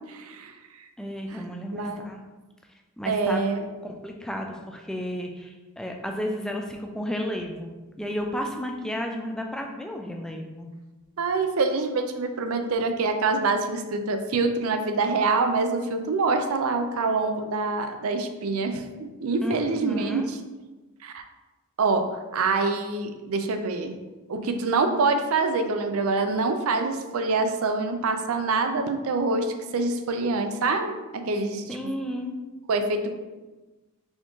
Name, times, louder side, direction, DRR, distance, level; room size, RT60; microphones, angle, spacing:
voice 1, 0.1-0.9 1.3-1.4 1.7-2.1 3.1-3.7 11.2-20.4 21.0-21.2 21.8-23.9 24.3-31.8 32.7-33.1, right 3 dB, 70° right, 7 dB, 0.5 m, -26 dB
voice 2, 1.0-2.2 3.0-3.4 3.8-10.7 19.4-20.3 31.7-32.4, equal, 5° left, 2 dB, 0.3 m, -32 dB
4.2 x 3.5 x 3.1 m, 1.2 s
head